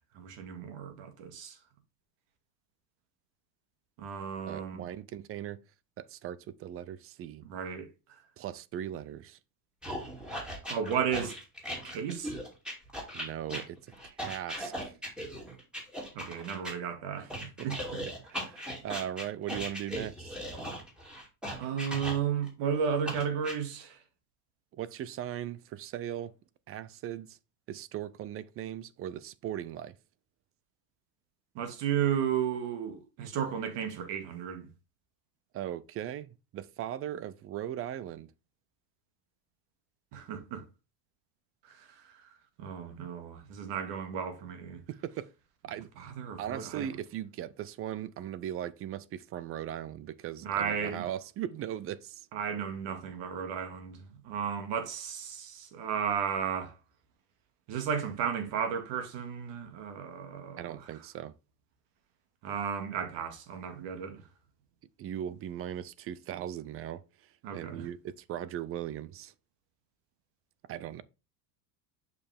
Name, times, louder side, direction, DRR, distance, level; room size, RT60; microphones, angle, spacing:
voice 1, 0.1-1.6 4.0-4.8 7.5-7.9 10.7-11.4 11.8-12.3 16.1-18.0 21.6-24.0 31.6-34.7 40.1-40.6 41.6-42.2 42.6-44.8 46.0-46.9 50.4-51.0 52.3-56.7 57.7-60.8 62.4-64.2 67.4-67.9, right 7 dB, 55° right, 2.1 m, -34 dB
voice 2, 4.4-5.6 6.0-7.4 8.4-9.4 13.1-14.9 17.6-17.7 18.3-20.4 24.7-26.4 26.7-27.4 27.7-29.9 35.5-38.3 44.9-45.3 45.6-45.9 46.4-52.3 60.6-61.3 65.0-69.3 70.7-71.0, right 11 dB, 30° right, 0.4 m, -39 dB
sound 1, 9.8-16.7 17.3-22.5 23.1-23.6, equal, ahead, 2.5 m, -38 dB
6.7 x 5.5 x 3.5 m
supercardioid pair, 120°, 50 cm